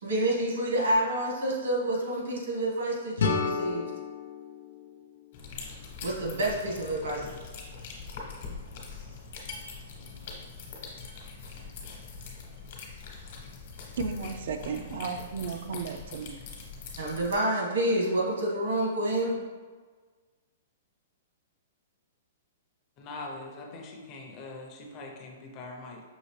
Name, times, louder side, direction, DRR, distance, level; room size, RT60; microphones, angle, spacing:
voice 1, 0.0-3.9 6.0-7.3 17.0-19.4, right 1 dB, 85° right, 1.5 m, -28 dB
sound 1, 3.2-6.1, left 5 dB, 80° left, 0.5 m, -33 dB
sound 2, 5.3-17.4, left 4 dB, 45° left, 1.0 m, -43 dB
voice 2, 14.0-16.4, right 5 dB, 55° right, 0.3 m, -34 dB
voice 3, 23.0-26.0, left 2 dB, 25° left, 0.6 m, -42 dB
5.5 x 3.0 x 3.2 m
hypercardioid pair, 175°, 0 cm